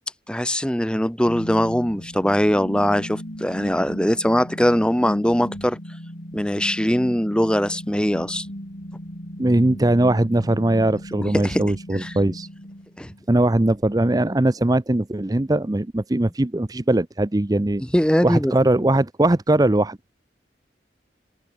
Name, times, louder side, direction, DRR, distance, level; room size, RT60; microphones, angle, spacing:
voice 1, 0.3-5.8 6.3-8.5 11.3-11.6 11.9-12.1 13.0-13.1 17.9-18.5, equal, 5° left, 1.4 m, -21 dB
sound 1, 1.2-13.2, equal, 55° left, 7.1 m, -37 dB
voice 2, 9.4-12.5 13.3-17.8 18.2-20.0, right 1 dB, 20° right, 0.6 m, -20 dB
open air
head